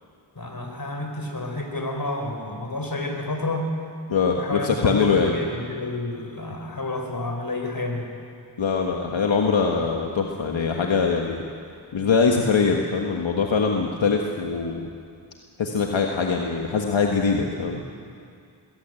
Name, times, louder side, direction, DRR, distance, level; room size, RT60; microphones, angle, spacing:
voice 1, 0.4-3.7 4.3-8.1, left 2 dB, 50° left, 3 dB, 4.3 m, -30 dB
voice 2, 4.1-5.3 8.6-11.4 11.9-14.9 15.6-17.8, left 5 dB, 80° left, 1 dB, 1.6 m, -22 dB
21.0 x 16.0 x 9.0 m, 2.3 s
cardioid pair, 45°, 45 cm